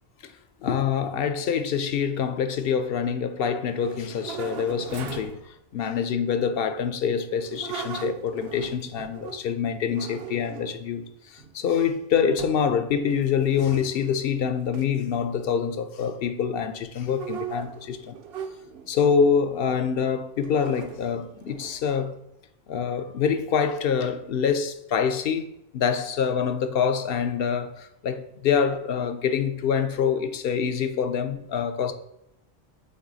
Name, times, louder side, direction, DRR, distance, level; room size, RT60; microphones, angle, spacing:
voice 1, 0.6-5.4 5.7-18.2 18.9-22.1 22.7-31.9, left 7 dB, 70° left, 0.7 m, -25 dB
sound 1, 3.5-5.5 7.3-9.5 9.9-10.9 11.4-12.0 12.4-12.7 13.0-14.2 14.7-14.9 17.0-19.0 19.6-19.9 20.4-22.0, right 7 dB, 70° right, 0.8 m, -39 dB
8.0 x 3.1 x 3.9 m
omnidirectional pair, 1.1 m